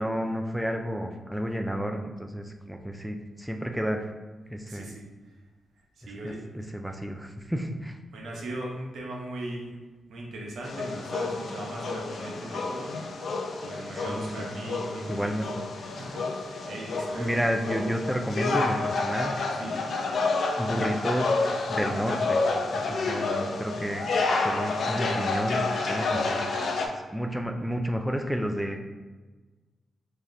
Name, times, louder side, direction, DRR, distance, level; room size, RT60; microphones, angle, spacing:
voice 1, 0.0-4.1 4.5-4.9 6.0-7.9 14.1-14.5 15.1-15.5 16.9-19.3 20.6-25.6 25.9-26.6 27.1-28.8, equal, ahead, 3 dB, 0.3 m, -31 dB
voice 2, 4.7-5.0 6.1-6.5 7.4-7.5 8.1-9.7 10.1-13.0 13.6-15.5 15.8-17.4 18.4-18.6 19.5-19.8, right 1 dB, 85° right, -1 dB, 0.8 m, -39 dB
sound 1, 10.6-26.9, left 3 dB, 65° left, 0.5 m, -29 dB
4.8 x 2.8 x 2.7 m, 1.3 s
cardioid pair, 95°, 0 cm